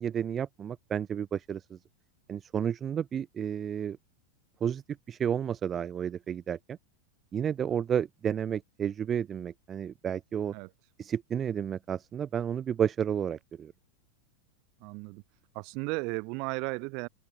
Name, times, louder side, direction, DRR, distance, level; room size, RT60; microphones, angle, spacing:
voice 1, 0.0-1.8 2.3-4.0 4.6-4.8 5.1-6.8 7.3-10.5 11.0-13.7, right 8 dB, 25° right, 0.7 m, -31 dB
voice 2, 14.8-15.2 15.5-17.1, right 32 dB, 45° right, 5.6 m, -35 dB
open air
figure-of-eight pair, 90°, 0 cm